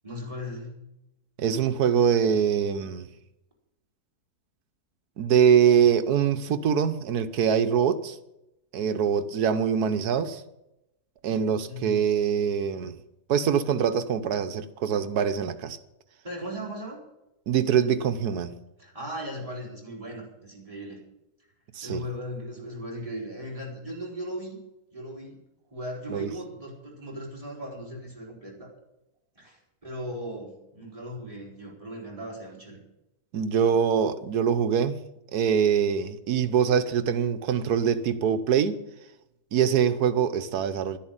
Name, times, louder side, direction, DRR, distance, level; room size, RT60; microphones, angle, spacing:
voice 1, 0.0-0.7 11.7-12.0 16.2-17.0 18.8-21.0 21.8-24.6 24.9-25.4 25.7-28.7 29.3-32.8, equal, 20° right, 4.9 m, -37 dB
voice 2, 1.4-3.1 5.2-8.2 8.7-10.4 11.2-13.0 13.3-15.8 17.5-18.6 21.8-22.0 26.1-26.3 33.3-35.0 35.3-38.8 39.5-41.0, right 7 dB, 80° right, 1.4 m, -24 dB
12.0 x 10.5 x 8.9 m
omnidirectional pair, 1.7 m